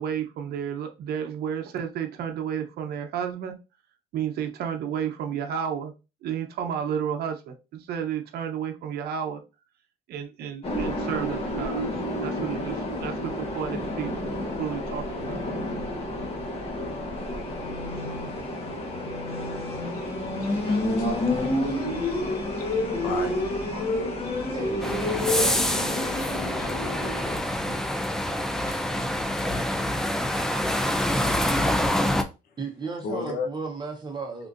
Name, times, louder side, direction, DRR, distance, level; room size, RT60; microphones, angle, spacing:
voice 1, 0.0-3.6 4.1-5.9 6.2-9.4 10.1-11.8 12.2-14.3 14.6-15.4, right 8 dB, 70° right, 0.7 m, -32 dB
sound 1, 10.6-27.4, left 1 dB, 35° left, 1.0 m, -29 dB
voice 2, 19.8-23.4 26.6-26.7 33.0-33.5, left 4 dB, 60° left, 0.8 m, -39 dB
voice 3, 24.5-25.8 27.7-27.8 32.6-34.5, right 4 dB, 25° right, 0.7 m, -35 dB
sound 2, 24.8-32.2, left 1 dB, 5° left, 0.4 m, -26 dB
3.6 x 2.5 x 2.5 m
cardioid pair, 110°, 17 cm